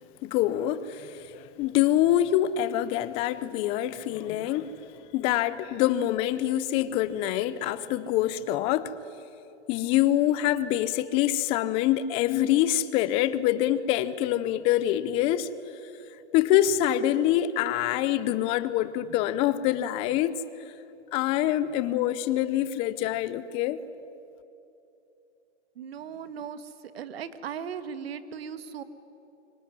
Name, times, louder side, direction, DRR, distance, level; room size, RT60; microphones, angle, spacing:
voice 1, 0.2-8.9 9.7-15.5 16.3-20.3 21.1-23.8, left 12 dB, 15° left, 0.5 m, -25 dB
voice 2, 25.8-26.7 26.9-28.8, right 7 dB, 55° right, 1.8 m, -37 dB
25.0 x 23.5 x 9.6 m
hypercardioid pair, 135°, 36 cm